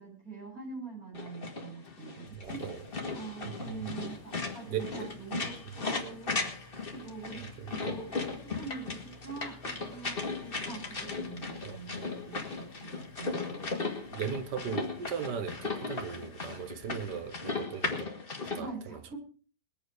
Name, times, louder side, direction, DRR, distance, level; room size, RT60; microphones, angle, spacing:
voice 1, 0.0-2.6 3.1-13.9 18.5-19.2, right 4 dB, 60° right, 8.6 m, -44 dB
sound 1, 1.1-18.6, left 3 dB, 35° left, 2.1 m, -37 dB
Engine, 1.8-17.6, left 2 dB, 65° left, 2.2 m, -55 dB
voice 2, 2.3-2.9 3.4-4.0 4.7-5.1 7.3-7.9 11.6-12.0 14.1-18.1 18.4-19.1, right 7 dB, 85° right, 1.7 m, -38 dB
20.5 x 8.7 x 5.0 m
omnidirectional pair, 1.8 m